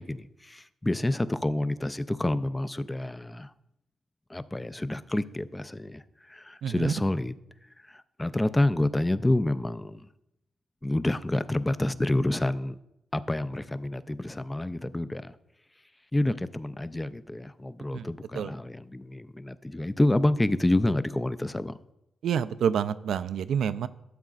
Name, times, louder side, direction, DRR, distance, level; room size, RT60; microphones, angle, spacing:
voice 1, 0.0-3.5 4.3-6.0 6.3-7.3 8.2-10.0 10.8-12.8 13.1-15.3 16.1-21.7, left 1 dB, 15° left, 14 dB, 0.3 m, -28 dB
voice 2, 6.6-6.9 17.9-18.1 18.3-18.5 22.2-23.9, right 8 dB, 80° right, 14 dB, 0.3 m, -28 dB
13.0 x 7.6 x 2.4 m, 0.87 s
cardioid pair, 100°, 0 cm